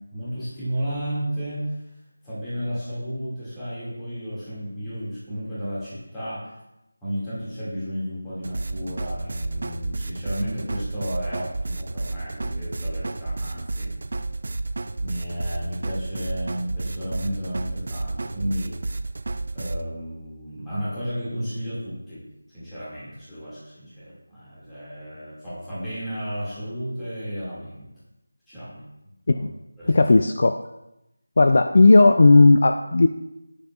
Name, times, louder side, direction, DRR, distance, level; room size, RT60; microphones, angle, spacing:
voice 1, 0.1-1.8 2.2-6.6 7.0-13.9 15.0-18.7 19.5-27.9 28.5-28.8 29.3-29.5 29.8-30.0, equal, 5° left, -14 dB, 2.1 m, -33 dB
sound 1, 8.4-19.8, right 2 dB, 40° right, 0.3 m, -31 dB
voice 2, 29.9-30.6 31.4-33.1, left 2 dB, 40° left, 7 dB, 0.4 m, -15 dB
17.0 x 6.9 x 2.4 m, 0.90 s
figure-of-eight pair, 175°, 0 cm